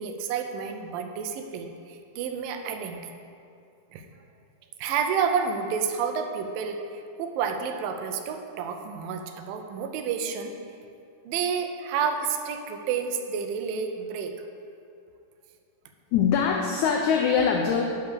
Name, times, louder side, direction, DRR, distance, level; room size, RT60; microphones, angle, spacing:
voice 1, 0.0-3.0 3.9-4.1 4.8-10.5 11.3-14.3, right 6 dB, 85° right, 6 dB, 2.4 m, -30 dB
voice 2, 16.1-17.8, left 6 dB, 85° left, 2 dB, 1.6 m, -23 dB
10.5 x 4.8 x 6.5 m, 2.4 s
omnidirectional pair, 4.1 m